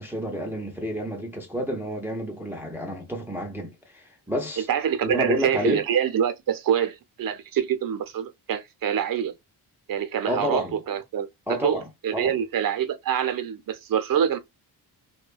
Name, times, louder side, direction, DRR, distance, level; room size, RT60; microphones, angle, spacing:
voice 1, 0.0-4.7 5.0-5.8 10.3-10.7 11.5-12.4, equal, 5° right, 0.4 m, -29 dB
voice 2, 4.7-9.3 9.9-11.3 11.6-11.8 12.0-14.4, right 9 dB, 55° right, 0.6 m, -25 dB
2.6 x 2.2 x 2.3 m
cardioid pair, 130°, 40 cm